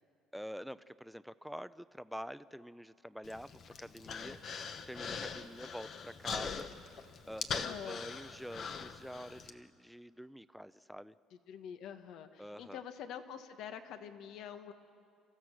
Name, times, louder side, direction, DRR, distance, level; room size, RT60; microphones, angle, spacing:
voice 1, 0.3-6.7 7.3-11.2 12.4-12.8, equal, ahead, 16 dB, 0.4 m, -47 dB
Human voice, 3.2-9.5, left 6 dB, 45° left, 1.1 m, -42 dB
voice 2, 7.6-8.0 11.5-14.7, left 8 dB, 70° left, 9 dB, 1.3 m, -46 dB
30.0 x 15.0 x 6.3 m, 2.3 s
cardioid pair, 125°, 0 cm